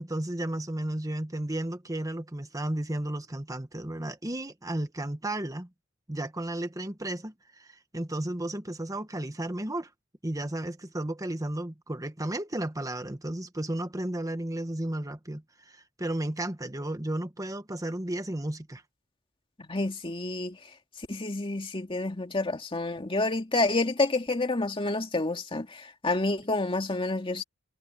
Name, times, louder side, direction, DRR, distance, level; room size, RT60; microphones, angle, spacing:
voice 1, 0.0-5.7 6.1-9.9 10.2-18.8, right 1 dB, 15° right, 1.3 m, -33 dB
voice 2, 19.6-20.6 21.1-27.4, left 2 dB, 25° left, 2.3 m, -29 dB
head